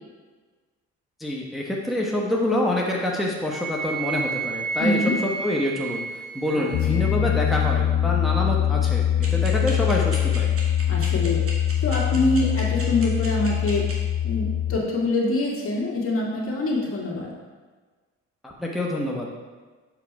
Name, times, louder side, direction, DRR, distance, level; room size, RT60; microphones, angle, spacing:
voice 1, 1.2-10.5 18.4-19.3, left 1 dB, ahead, -2 dB, 0.9 m, -26 dB
Wind instrument woodwind instrument, 3.5-7.2, right 3 dB, 75° right, 1.7 m, -31 dB
voice 2, 4.8-5.1 6.5-6.7 10.9-11.4 11.8-13.8 14.2-17.3, left 2 dB, 45° left, -2 dB, 2.0 m, -25 dB
Piano, 6.7-14.8, left 10 dB, 85° left, 0.6 m, -23 dB
sound 1, 9.2-13.9, right 3 dB, 50° right, 2.0 m, -37 dB
7.0 x 5.1 x 4.6 m, 1.4 s
cardioid pair, 90°, 30 cm